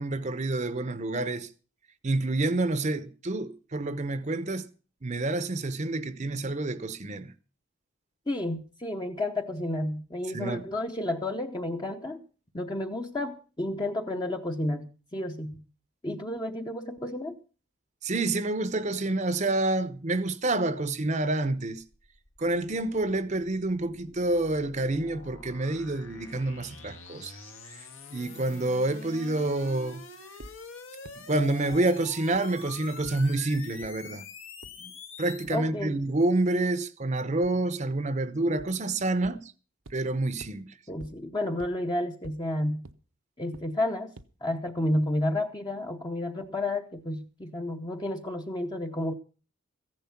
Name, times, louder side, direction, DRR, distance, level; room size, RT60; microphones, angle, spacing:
voice 1, 0.0-1.5 2.0-4.7 5.0-7.3 10.3-10.6 18.0-21.8 22.4-30.0 31.2-34.2 34.8-34.9 35.2-39.5 39.9-40.6, right 2 dB, 35° right, 0.8 m, -28 dB
voice 2, 8.3-12.2 12.5-15.6 16.0-17.4 35.5-36.0 40.9-42.8 43.4-44.1 44.4-49.1, left 1 dB, 20° left, 0.8 m, -31 dB
sound 1, 21.9-35.6, left 4 dB, 75° left, 1.9 m, -46 dB
sound 2, 30.4-30.5 31.0-31.1 31.7-31.8 32.3-32.4 33.0-33.1 33.8-33.9 34.6-34.7 35.4-35.5 37.4-37.5 38.6-38.7 39.2-39.3 39.8-39.9 40.4-40.5 41.0-41.1 41.6-41.7 42.2-42.3 42.8-42.9 43.5-43.6 44.2-44.3, right 2 dB, 75° right, 0.9 m, -45 dB
15.0 x 10.5 x 5.7 m
head